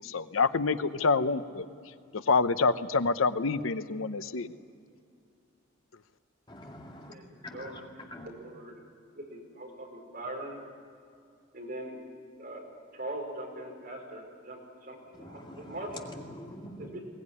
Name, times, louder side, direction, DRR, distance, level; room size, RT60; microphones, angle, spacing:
voice 1, 0.0-1.7 2.1-4.5, left 4 dB, 90° left, 12 dB, 0.8 m, -27 dB
voice 2, 6.5-7.1 7.4-7.8 8.1-8.3 15.1-17.0, left 1 dB, 25° left, 1 dB, 2.1 m, -45 dB
voice 3, 7.1-8.7 9.3-10.6 11.5-12.0 12.4-12.6 12.9-16.0 16.8-17.0, right 1 dB, 50° right, 0 dB, 5.0 m, -41 dB
22.0 x 18.5 x 9.8 m, 2.4 s
head